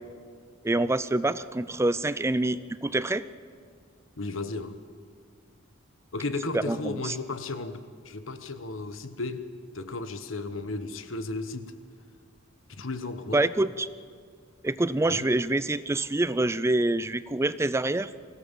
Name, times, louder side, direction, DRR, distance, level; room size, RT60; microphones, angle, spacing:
voice 1, 0.6-3.2 6.5-7.1 13.3-13.9 14.6-18.1, right 2 dB, 15° right, 15 dB, 0.4 m, -26 dB
voice 2, 4.2-4.8 6.1-9.5 9.7-11.7 12.7-13.4 15.0-15.3, left 3 dB, 85° left, 11 dB, 1.3 m, -34 dB
24.0 x 16.5 x 7.3 m, 2.1 s
head